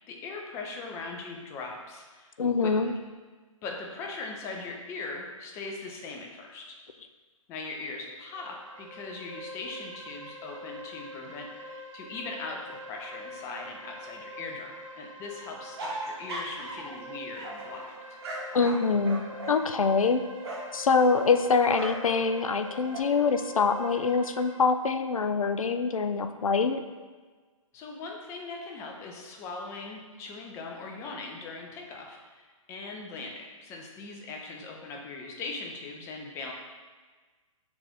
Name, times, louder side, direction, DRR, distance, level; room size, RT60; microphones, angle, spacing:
voice 1, 0.1-2.9 3.6-6.8 7.5-17.9 27.7-32.4 32.7-36.5, left 3 dB, 15° left, 1 dB, 0.5 m, -40 dB
voice 2, 2.4-2.9 18.5-20.2 20.7-26.8, left 5 dB, 80° left, 8 dB, 0.4 m, -25 dB
sound 1, 8.2-24.6, equal, 70° right, 0.7 m, -44 dB
sound 2, 15.8-17.0 17.4-20.8 21.7-22.1 22.5-23.0, right 2 dB, 50° right, 1.0 m, -39 dB
6.1 x 2.5 x 3.5 m, 1.4 s
figure-of-eight pair, 125°, 17 cm